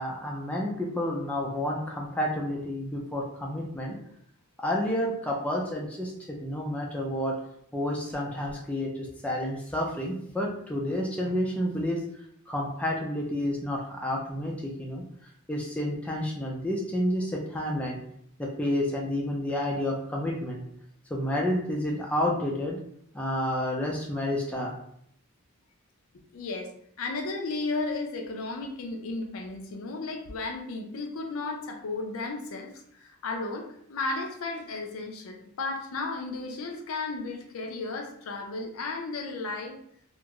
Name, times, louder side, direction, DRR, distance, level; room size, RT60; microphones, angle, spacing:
voice 1, 0.0-4.0 4.6-7.4 7.7-12.0 12.5-15.0 15.5-18.0 18.4-20.6 21.1-22.8 23.1-24.8, left 1 dB, 5° left, -2 dB, 0.3 m, -30 dB
voice 2, 26.3-26.7 27.0-32.7 33.0-39.8, left 3 dB, 70° left, 3 dB, 0.4 m, -34 dB
2.4 x 2.3 x 2.9 m, 0.70 s
head